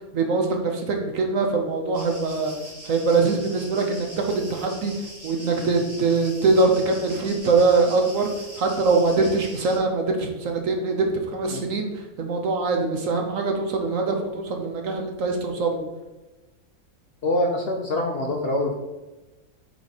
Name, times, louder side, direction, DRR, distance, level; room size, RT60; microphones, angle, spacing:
voice 1, 0.1-2.5 2.8-4.9 5.2-8.3 8.6-15.8, right 3 dB, 60° right, 3 dB, 1.3 m, -23 dB
sound 1, 1.9-9.8, right 1 dB, 25° right, 1.5 m, -42 dB
voice 2, 17.2-18.7, left 1 dB, 50° left, 2 dB, 0.8 m, -25 dB
7.9 x 3.7 x 4.1 m, 1.1 s
omnidirectional pair, 1.6 m